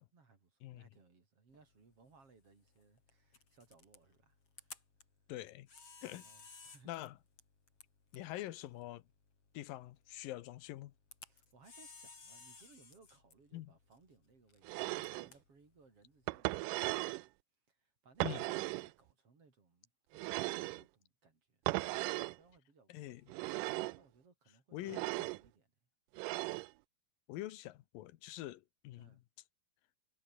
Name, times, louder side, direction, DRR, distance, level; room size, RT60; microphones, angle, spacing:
voice 1, 0.0-4.8 6.1-7.1 11.3-17.3 17.7-21.7 22.3-23.2 23.9-24.9 25.3-25.7 28.9-29.2, right 4 dB, 45° right, 5.0 m, -65 dB
Camera, 1.5-17.0, left 4 dB, 45° left, 5.5 m, -60 dB
voice 2, 5.3-5.7 6.0-6.3 6.9-7.1 8.1-9.0 9.5-10.9 13.5-13.7 18.2-18.4 22.9-23.2 24.7-25.3 27.3-29.1, left 15 dB, 85° left, 2.7 m, -45 dB
sound 1, 14.6-15.3 16.3-17.2 18.2-18.9 20.1-20.8 21.7-22.4 23.3-24.0 24.8-25.4 26.1-26.7, right 21 dB, 80° right, 2.1 m, -37 dB
omnidirectional pair, 3.9 m